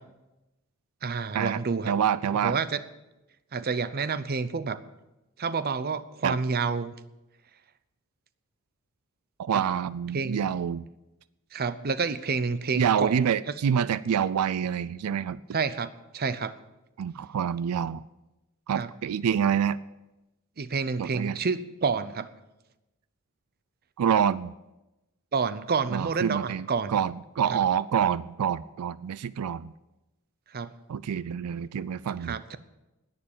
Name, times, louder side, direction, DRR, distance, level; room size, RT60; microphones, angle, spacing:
voice 1, 1.0-1.9 2.4-2.8 3.5-4.8 5.4-6.9 9.5-9.6 10.1-10.4 11.5-13.2 15.5-16.5 18.7-18.9 20.6-22.3 25.3-27.0 27.5-27.6 30.5-30.7 32.2-32.6, right 5 dB, 45° right, 14 dB, 0.6 m, -29 dB
voice 2, 1.9-2.6 6.2-6.4 9.4-10.9 12.7-15.4 17.0-18.0 18.7-19.8 21.0-21.4 24.0-24.5 25.9-29.7 30.9-32.4, right 8 dB, 85° right, 18 dB, 0.4 m, -27 dB
11.0 x 9.9 x 7.2 m, 0.99 s
head